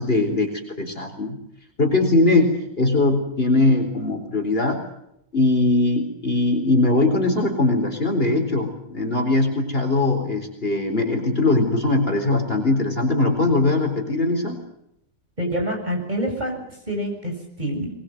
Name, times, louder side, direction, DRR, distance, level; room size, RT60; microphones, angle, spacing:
voice 1, 0.0-1.4 1.8-4.8 5.3-14.6, left 2 dB, 40° left, 4 dB, 4.3 m, -21 dB
voice 2, 15.4-16.6 16.9-17.9, equal, 30° right, 1 dB, 7.5 m, -26 dB
23.0 x 22.5 x 7.9 m, 0.79 s
omnidirectional pair, 1.5 m